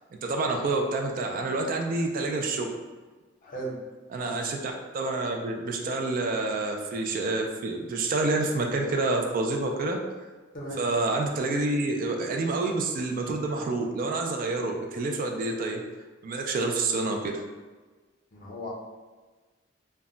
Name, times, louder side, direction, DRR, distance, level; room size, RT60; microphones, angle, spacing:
voice 1, 0.2-2.7 4.1-10.0 10.8-15.8 16.2-17.4, right 2 dB, 45° right, 3 dB, 0.3 m, -28 dB
voice 2, 3.4-3.7 4.2-4.4 10.5-10.8 18.3-18.7, right 1 dB, 45° left, -3 dB, 0.7 m, -36 dB
2.2 x 2.1 x 3.7 m, 1.3 s
head